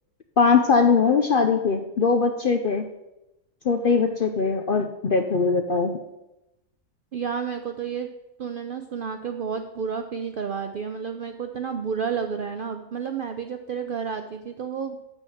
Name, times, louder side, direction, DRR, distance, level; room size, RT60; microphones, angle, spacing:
voice 1, 0.4-2.8 3.6-6.0, left 5 dB, 60° left, 6 dB, 0.5 m, -21 dB
voice 2, 7.1-8.1 8.4-15.0, right 6 dB, 65° right, 6 dB, 0.5 m, -31 dB
7.2 x 5.5 x 7.0 m, 0.93 s
omnidirectional pair, 1.5 m